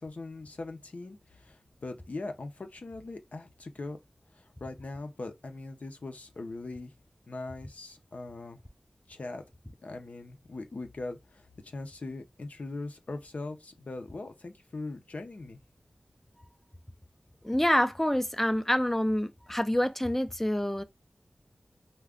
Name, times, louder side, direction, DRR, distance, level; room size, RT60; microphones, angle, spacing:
voice 1, 0.0-4.0 4.3-6.9 7.3-8.6 9.1-9.4 9.8-15.6, left 2 dB, 70° left, 0.5 m, -40 dB
voice 2, 17.4-20.8, left 1 dB, 10° left, 0.4 m, -27 dB
2.4 x 2.1 x 3.5 m
wide cardioid pair, 45°, 3 cm